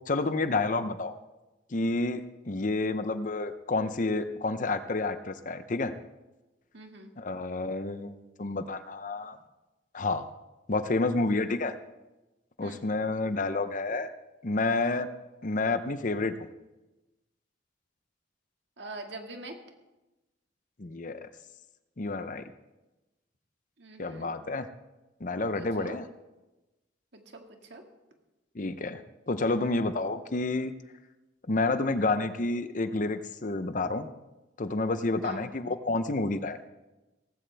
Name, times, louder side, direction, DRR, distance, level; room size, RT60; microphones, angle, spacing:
voice 1, 0.1-1.2 1.7-5.9 7.2-9.4 9.9-10.3 10.7-11.8 12.6-14.1 14.4-15.1 15.4-16.5 20.8-21.3 22.0-22.4 24.0-24.7 25.2-26.0 28.5-30.7 31.5-34.1 34.6-36.6, left 3 dB, 45° left, 11 dB, 0.7 m, -29 dB
voice 2, 6.7-7.1 12.6-12.8 18.8-19.5 23.8-24.3 25.5-25.9 27.1-27.8 35.2-35.5, right 2 dB, 65° right, 3 dB, 2.0 m, -43 dB
17.5 x 15.5 x 3.4 m, 1.0 s
head